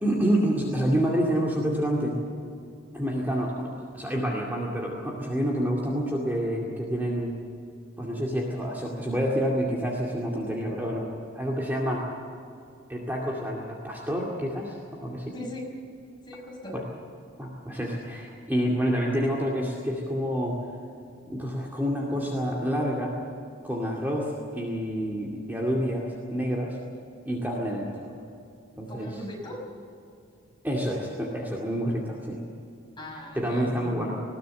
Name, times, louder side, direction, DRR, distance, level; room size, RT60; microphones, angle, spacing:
voice 1, 0.0-2.2 2.9-7.3 8.0-11.1 11.3-12.0 12.9-15.4 16.7-16.8 17.4-20.6 21.3-23.2 23.6-26.8 27.3-28.1 28.8-29.1 30.6-32.4 33.3-34.2, equal, 10° right, -3 dB, 2.3 m, -28 dB
voice 2, 15.3-15.7 16.3-16.8 28.9-29.6 33.0-33.9, left 1 dB, 20° left, -2 dB, 5.6 m, -39 dB
20.5 x 17.5 x 7.8 m, 2.6 s
head